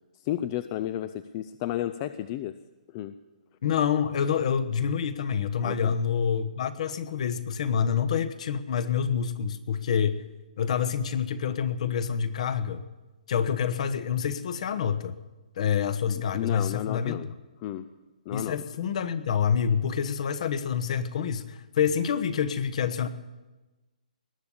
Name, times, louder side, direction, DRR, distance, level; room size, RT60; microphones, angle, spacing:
voice 1, 0.2-2.6 2.9-3.2 5.6-6.0 16.1-17.3 17.6-17.9 18.3-18.6, left 12 dB, 30° left, 13 dB, 0.4 m, -32 dB
voice 2, 3.6-10.2 10.6-12.8 13.3-15.1 15.6-17.2 18.3-23.1, left 7 dB, 55° left, 12 dB, 1.1 m, -27 dB
19.5 x 7.1 x 9.9 m, 1.1 s
hypercardioid pair, 150°, 4 cm